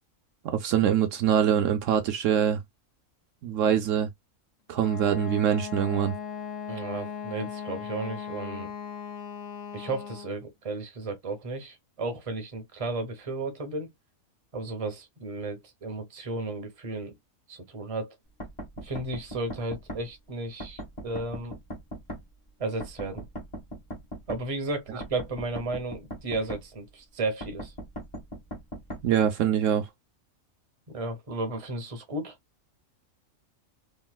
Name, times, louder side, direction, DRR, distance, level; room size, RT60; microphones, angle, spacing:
voice 1, 0.4-2.6 3.4-4.1 4.7-6.1 29.0-29.9, right 9 dB, 75° right, 0.9 m, -24 dB
Wind instrument woodwind instrument, 4.7-10.4, left 7 dB, 70° left, 1.0 m, -38 dB
voice 2, 6.7-8.7 9.7-13.9 14.5-17.1 17.5-18.1 18.8-21.6 22.6-23.2 24.3-27.7 30.9-32.4, right 2 dB, 30° right, 0.8 m, -34 dB
sound 1, 18.4-20.0 20.6-22.2 22.8-24.4 25.0-26.6 27.4-29.0, right 1 dB, 25° left, 1.1 m, -38 dB
3.0 x 2.7 x 2.2 m
omnidirectional pair, 1.4 m